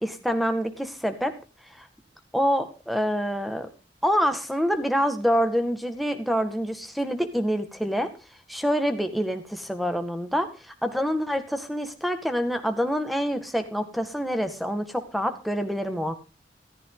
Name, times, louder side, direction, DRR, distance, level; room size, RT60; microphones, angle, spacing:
voice 1, 0.0-1.3 1.8-1.9 2.3-3.7 4.0-8.1 8.5-16.1, equal, ahead, 8 dB, 1.8 m, -26 dB
14.0 x 14.0 x 3.9 m, 0.30 s
head